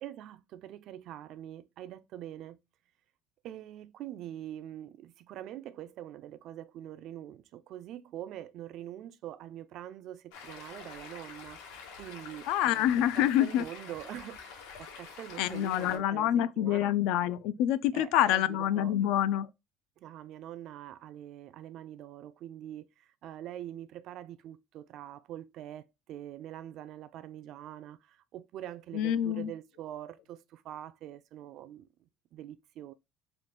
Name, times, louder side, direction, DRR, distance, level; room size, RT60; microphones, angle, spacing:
voice 1, 0.0-2.6 3.4-7.4 7.7-10.2 10.5-11.6 12.0-12.9 13.2-14.4 15.0-16.3 16.6-16.9 17.9-18.9 20.0-22.9 23.2-25.8 26.1-28.0 28.3-30.4 30.7-31.8 32.3-32.9, right 12 dB, 45° right, 0.3 m, -44 dB
Stream, 10.3-16.0, left 5 dB, 85° left, 1.2 m, -47 dB
voice 2, 12.5-13.7 15.4-19.5 28.9-29.5, left 11 dB, 60° left, 0.3 m, -27 dB
3.8 x 2.4 x 3.4 m
cardioid pair, 170°, 0 cm